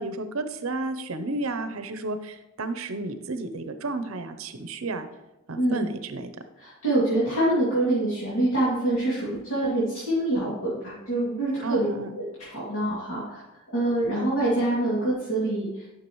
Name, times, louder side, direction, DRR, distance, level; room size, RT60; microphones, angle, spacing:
voice 1, 0.0-5.1 5.5-6.3 11.6-12.1, right 2 dB, 75° right, 9 dB, 0.7 m, -32 dB
voice 2, 5.6-5.9 6.6-11.9 12.2-12.3 12.5-13.4 13.7-15.9, right 1 dB, 75° left, -10 dB, 2.5 m, -25 dB
10.5 x 5.8 x 3.1 m, 0.98 s
head